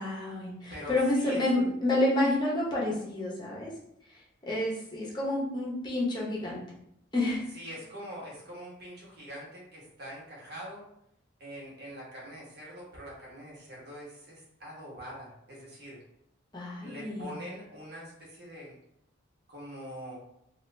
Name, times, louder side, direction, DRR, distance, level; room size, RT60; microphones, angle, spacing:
voice 1, 0.0-3.7 4.5-6.6 7.1-7.4 16.5-17.3, left 1 dB, 20° left, -5 dB, 0.8 m, -29 dB
voice 2, 7.5-10.8 11.4-16.0 16.8-18.7 19.5-20.1, equal, 50° right, -5 dB, 1.1 m, -44 dB
2.9 x 2.4 x 3.2 m, 0.76 s
head